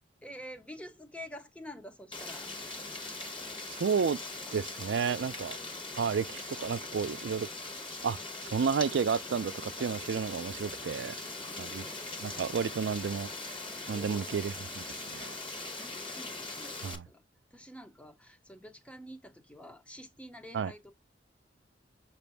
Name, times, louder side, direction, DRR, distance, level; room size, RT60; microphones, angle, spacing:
voice 1, 0.2-2.5 5.6-5.8 8.1-8.6 11.2-12.5 13.8-14.5 15.8-17.2 17.5-20.9, equal, 5° left, 0.6 m, -49 dB
Rain, 2.1-17.0, left 2 dB, 30° left, 1.0 m, -41 dB
voice 2, 3.7-4.2 4.5-5.6 6.0-7.5 8.0-8.2 8.5-11.1 11.6-11.8 12.2-13.3 13.9-14.8 15.1-15.3 16.8-17.1 20.5-20.7, right 6 dB, 70° right, 0.4 m, -31 dB
6.2 x 2.4 x 3.4 m
head